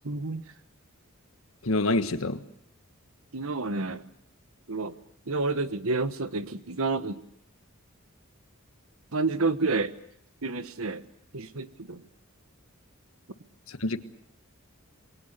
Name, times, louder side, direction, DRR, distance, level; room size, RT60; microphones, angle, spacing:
voice 1, 0.0-0.4 3.3-4.1 4.7-5.0 5.3-7.2 9.1-9.9 10.4-11.0 11.3-12.0, right 3 dB, 80° right, 12 dB, 1.3 m, -29 dB
voice 2, 1.6-2.4 13.7-14.0, left 2 dB, 80° left, 10 dB, 1.5 m, -26 dB
28.0 x 22.0 x 6.8 m, 0.70 s
head